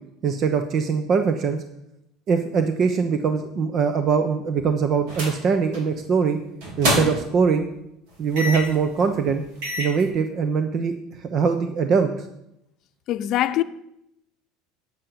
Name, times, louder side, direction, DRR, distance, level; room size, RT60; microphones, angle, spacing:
voice 1, 0.2-1.6 2.3-6.4 6.8-7.6 8.2-9.4 9.8-10.9 11.2-12.1, right 5 dB, 45° right, 1.0 m, -22 dB
sound 1, 5.1-5.4 5.7-6.0 6.6-7.4 8.4-8.8 9.3-9.4 9.6-10.0, equal, 75° right, 4.3 m, -26 dB
voice 2, 13.1-13.6, left 13 dB, 55° left, 0.7 m, -22 dB
9.2 x 8.7 x 7.0 m
supercardioid pair, 105°, 0 cm